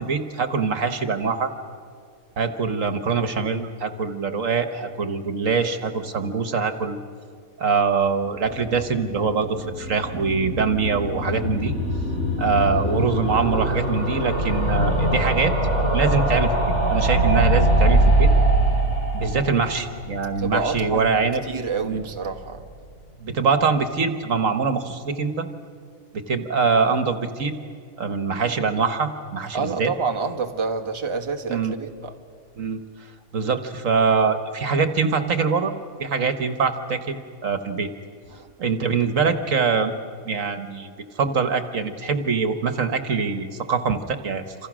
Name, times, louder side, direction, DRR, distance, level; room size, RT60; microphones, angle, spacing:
voice 1, 0.0-1.5 2.4-7.0 7.6-11.7 12.4-15.5 15.9-16.5 16.9-18.3 19.1-21.4 21.8-22.0 23.2-25.5 26.1-27.6 28.0-29.9 31.5-31.7 32.6-32.8 33.3-35.7 36.0-37.2 37.4-37.9 38.6-39.9 40.2-40.9 41.2-44.4, right 5 dB, 65° right, 1.6 m, -23 dB
sound 1, 8.3-21.3 21.6-21.7 21.9-22.0 22.2-22.3, right 1 dB, 50° left, 6.7 m, -22 dB
voice 2, 20.4-22.6 29.5-32.1 38.3-38.5, right 4 dB, 20° right, 1.3 m, -28 dB
27.5 x 27.0 x 6.2 m
omnidirectional pair, 1.5 m